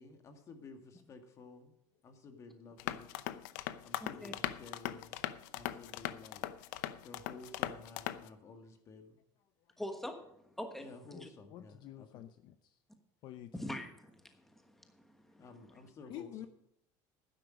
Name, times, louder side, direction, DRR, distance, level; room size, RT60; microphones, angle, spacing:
voice 1, 0.0-1.8 2.0-3.2 3.5-5.2 5.5-6.4 7.0-9.2 10.8-12.2 15.4-16.5, left 4 dB, 30° left, 6 dB, 2.0 m, -54 dB
sound 1, 2.8-8.3, left 14 dB, 85° left, 0.7 m, -40 dB
voice 2, 4.0-4.3 9.8-10.9 11.1-11.3 13.5-15.0 15.3-15.4, left 1 dB, 5° left, 5 dB, 1.3 m, -44 dB
voice 3, 11.5-12.8 13.2-13.5 16.1-16.5, left 12 dB, 50° left, 10 dB, 0.6 m, -48 dB
12.0 x 10.0 x 5.1 m, 0.78 s
cardioid pair, 150°, 10 cm